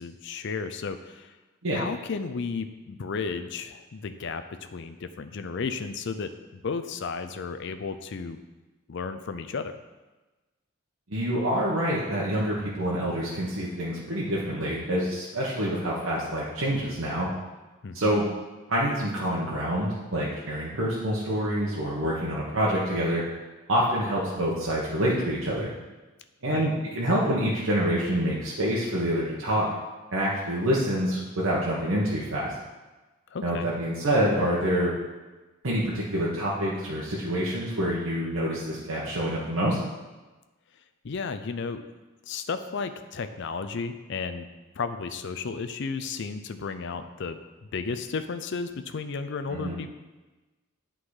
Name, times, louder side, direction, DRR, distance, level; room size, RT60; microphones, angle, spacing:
voice 1, 0.0-1.3 1.7-8.4 8.9-9.8 17.8-18.1 26.5-26.7 33.3-33.7 41.0-41.8 42.3-44.5 44.8-47.4 47.7-49.9, left 5 dB, 55° left, 9 dB, 0.5 m, -33 dB
voice 2, 11.1-17.3 17.9-18.3 18.7-23.2 23.7-25.7 26.4-29.7 30.1-32.5 33.4-34.9 35.6-39.8 49.5-49.7, equal, 65° right, -6 dB, 1.1 m, -27 dB
8.5 x 3.8 x 4.9 m, 1.2 s
head